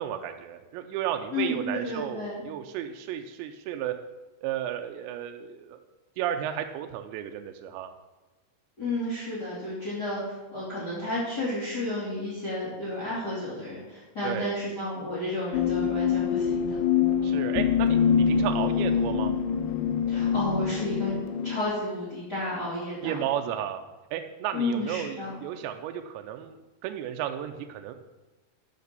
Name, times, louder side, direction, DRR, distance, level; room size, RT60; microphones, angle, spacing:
voice 1, 0.0-3.9 4.4-5.8 6.2-7.9 14.2-14.6 17.2-19.3 23.0-23.8 24.1-26.6 26.8-27.9, right 10 dB, 85° right, 6 dB, 2.8 m, -33 dB
voice 2, 1.3-2.4 8.8-16.8 20.1-21.1 21.4-23.1 24.5-25.4, left 1 dB, 25° left, -7 dB, 2.7 m, -32 dB
sound 1, 15.5-21.6, left 7 dB, 85° left, 2.4 m, -25 dB
9.3 x 5.8 x 6.7 m, 1.1 s
omnidirectional pair, 5.0 m